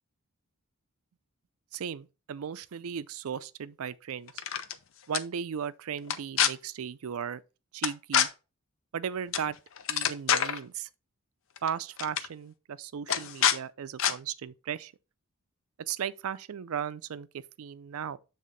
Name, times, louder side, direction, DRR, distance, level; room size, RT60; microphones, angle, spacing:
voice 1, 1.7-4.4 5.1-7.4 7.7-8.3 8.9-9.6 9.9-10.9 11.6-14.9 15.9-18.2, right 8 dB, 70° right, 0.4 m, -36 dB
sound 1, 4.3-4.7 5.1-5.2 6.0-6.5 7.8-8.3 9.3-9.5 9.8-10.6 11.6-11.7 12.0-12.3 13.1-13.6 14.0-14.1, left 8 dB, 60° left, 0.5 m, -26 dB
7.5 x 3.5 x 3.9 m
head